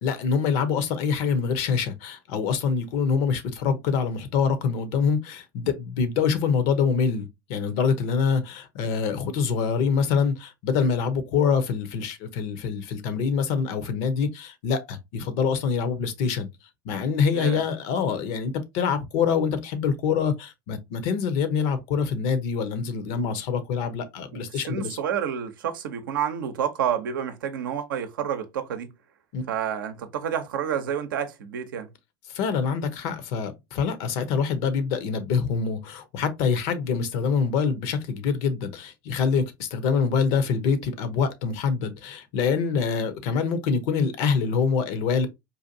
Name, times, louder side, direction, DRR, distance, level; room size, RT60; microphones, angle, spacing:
voice 1, 0.0-16.5 16.8-25.0 29.3-29.4 32.3-45.3, left 6 dB, 60° left, 0.7 m, -25 dB
voice 2, 24.3-28.9 29.5-31.9, right 8 dB, 75° right, 0.6 m, -29 dB
4.1 x 2.5 x 2.6 m
hypercardioid pair, 80°, 11 cm